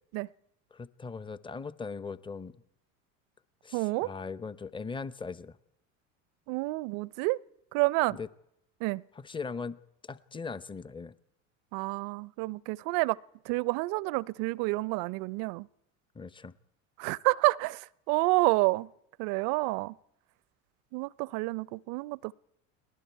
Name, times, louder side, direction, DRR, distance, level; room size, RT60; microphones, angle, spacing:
voice 1, 0.7-2.6 3.6-5.6 8.1-8.3 9.1-11.1 16.1-16.5, left 4 dB, 10° left, 0.9 m, -39 dB
voice 2, 3.7-4.1 6.5-7.4 7.7-8.2 8.8-9.0 11.7-13.2 13.5-15.7 17.0-18.9 19.2-19.9 20.9-22.3, right 23 dB, 55° right, 0.7 m, -29 dB
30.0 x 20.0 x 4.6 m
hypercardioid pair, 80°, 40 cm